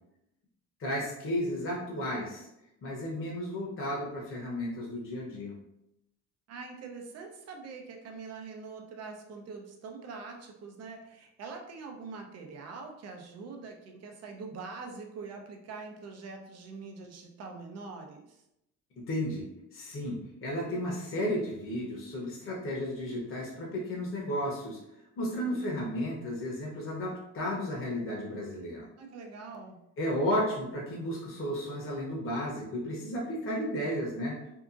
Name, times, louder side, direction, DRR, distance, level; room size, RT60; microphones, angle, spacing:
voice 1, 0.8-2.5 2.8-5.5 19.1-24.8 25.2-28.9 30.0-34.3, equal, 40° left, -3 dB, 0.9 m, -33 dB
voice 2, 6.5-18.4 25.5-25.6 29.0-29.8, right 4 dB, 55° right, 2 dB, 0.7 m, -44 dB
2.8 x 2.5 x 2.5 m, 0.84 s
cardioid pair, 100°, 32 cm